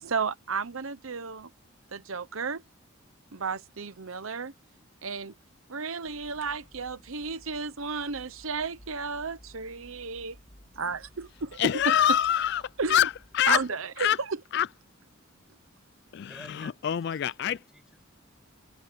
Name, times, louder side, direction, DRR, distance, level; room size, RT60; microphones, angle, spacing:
voice 1, 0.0-1.5 1.9-2.6 3.3-4.5 5.0-5.3 5.7-10.4 10.8-12.0 12.8-13.1 13.5-14.4, right 4 dB, 80° right, 0.9 m, -33 dB
sound 1, 6.0-13.7, equal, 25° left, 1.3 m, -56 dB
voice 2, 11.6-12.6 12.9-13.6 14.0-14.2 14.5-14.7 16.1-16.3 16.6-17.6, left 10 dB, 55° left, 0.3 m, -25 dB
voice 3, 16.2-18.0, equal, 5° right, 5.4 m, -52 dB
head